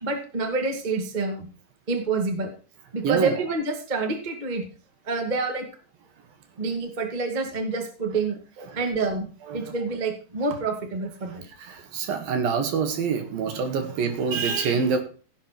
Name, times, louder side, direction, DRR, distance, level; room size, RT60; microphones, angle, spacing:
voice 1, 0.0-1.5 1.9-2.5 2.9-4.6 5.0-5.7 6.6-8.4 8.7-11.4, right 3 dB, 20° right, 3 dB, 1.1 m, -27 dB
voice 2, 3.0-3.4 8.7-8.8 9.5-9.7 11.6-15.0, right 6 dB, 60° right, 6 dB, 3.2 m, -26 dB
17.0 x 7.2 x 4.5 m, 0.38 s
omnidirectional pair, 5.1 m